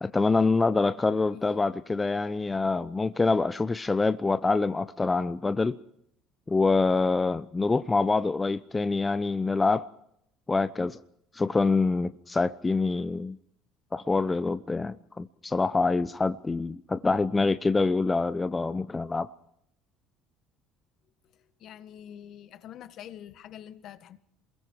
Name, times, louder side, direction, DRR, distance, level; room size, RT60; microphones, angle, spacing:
voice 1, 0.0-5.8 6.5-9.9 10.5-11.0 11.3-13.4 13.9-19.3, left 3 dB, 20° left, 0.8 m, -25 dB
voice 2, 1.3-1.6 21.6-24.2, left 10 dB, 60° left, 1.7 m, -45 dB
28.0 x 22.0 x 4.9 m
hypercardioid pair, 70°, 0 cm